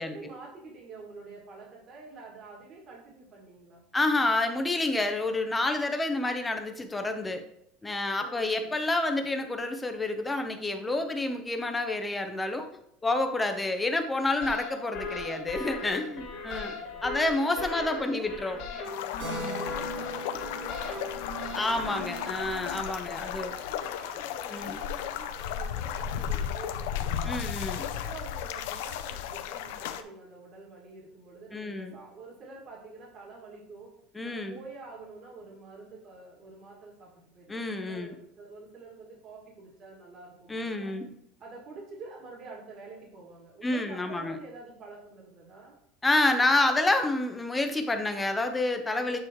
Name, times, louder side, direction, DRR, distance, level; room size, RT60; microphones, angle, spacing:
voice 1, 0.0-3.8 8.2-8.8 15.0-15.6 16.1-17.1 17.4-22.5 23.0-27.4 27.7-34.0 34.2-40.9 41.4-45.8, right 3 dB, 30° right, -2 dB, 2.0 m, -47 dB
voice 2, 3.9-7.4 7.8-12.7 13.0-16.7 17.0-18.6 19.3-19.7 21.6-23.5 24.5-24.8 27.2-27.8 31.5-31.9 34.1-34.6 37.5-38.1 40.5-41.1 43.6-44.4 46.0-49.2, left 2 dB, 10° left, 6 dB, 0.6 m, -29 dB
sound 1, 14.4-22.8, left 3 dB, 50° left, 1.8 m, -38 dB
sound 2, 18.9-30.0, left 9 dB, 75° left, 0.5 m, -35 dB
Keyboard (musical), 19.2-23.3, left 1 dB, 60° right, 2.5 m, -41 dB
8.6 x 3.2 x 4.5 m, 0.77 s
cardioid pair, 170°, 0 cm